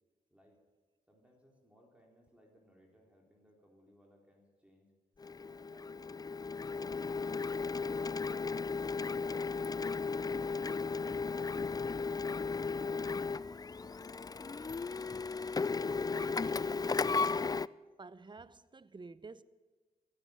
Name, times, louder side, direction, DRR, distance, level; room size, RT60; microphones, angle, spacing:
voice 1, 1.1-4.9 5.4-9.3, equal, 5° right, 3.8 m, -64 dB
Printer, 5.2-17.7, left 4 dB, 25° left, 0.4 m, -35 dB
voice 2, 15.9-17.5 18.0-19.4, right 3 dB, 30° right, 0.8 m, -52 dB
15.5 x 9.5 x 8.5 m
cardioid pair, 50°, 16 cm